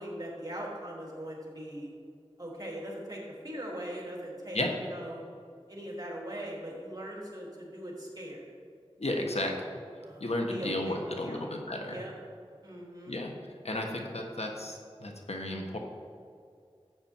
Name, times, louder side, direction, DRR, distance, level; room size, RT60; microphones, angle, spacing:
voice 1, 0.0-1.9 2.4-5.2 5.7-8.5 9.2-9.5 10.0-12.1 12.6-13.2, equal, 35° right, -3 dB, 3.2 m, -41 dB
voice 2, 9.0-9.5 10.2-12.0 13.1-13.3 13.6-15.8, left 1 dB, 80° left, 2 dB, 1.3 m, -33 dB
13.0 x 8.8 x 4.5 m, 2.3 s
wide cardioid pair, 45°, 11 cm